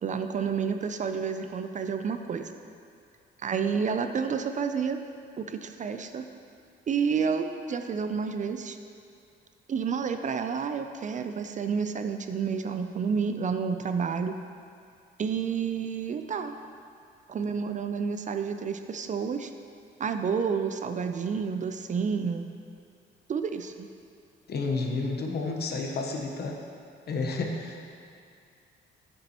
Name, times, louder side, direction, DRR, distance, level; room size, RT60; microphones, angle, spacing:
voice 1, 0.0-2.5 3.4-5.0 5.4-6.2 6.9-8.8 9.7-14.4 15.2-16.5 17.3-19.5 20.0-22.5 23.3-23.9, right 6 dB, 40° right, 7 dB, 0.4 m, -30 dB
voice 2, 24.5-26.6 27.1-27.8, left 3 dB, 55° left, 2 dB, 1.0 m, -31 dB
9.2 x 6.8 x 2.9 m, 2.4 s
cardioid pair, 90°, 20 cm